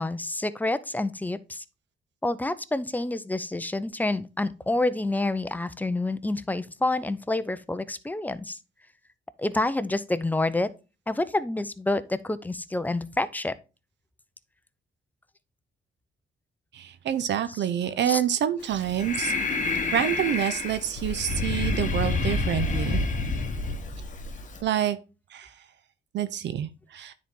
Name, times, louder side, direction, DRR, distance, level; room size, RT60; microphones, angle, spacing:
voice 1, 0.0-1.6 2.2-8.6 9.4-10.7 11.1-13.5 17.5-17.6 18.0-18.2, left 2 dB, 10° left, 0.5 m, -28 dB
voice 2, 16.7-19.3 19.9-23.0 24.6-25.0 25.3-25.5 26.1-27.1, right 10 dB, 65° right, 0.6 m, -27 dB
Breathing, 18.6-24.6, left 3 dB, 40° left, 1.2 m, -28 dB
9.3 x 4.1 x 3.6 m
cardioid pair, 90°, 20 cm